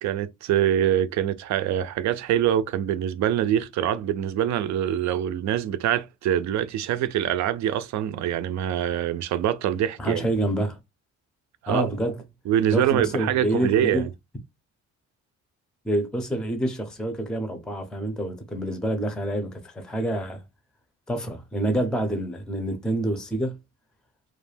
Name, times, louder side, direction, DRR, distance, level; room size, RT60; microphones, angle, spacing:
voice 1, 0.0-10.3 11.6-11.9 12.5-14.1, right 10 dB, 65° right, 0.4 m, -24 dB
voice 2, 10.0-10.8 11.7-12.2 12.7-14.1 15.8-20.4 21.1-23.6, right 1 dB, 5° left, 0.5 m, -27 dB
2.4 x 2.1 x 3.3 m
cardioid pair, 90°, 30 cm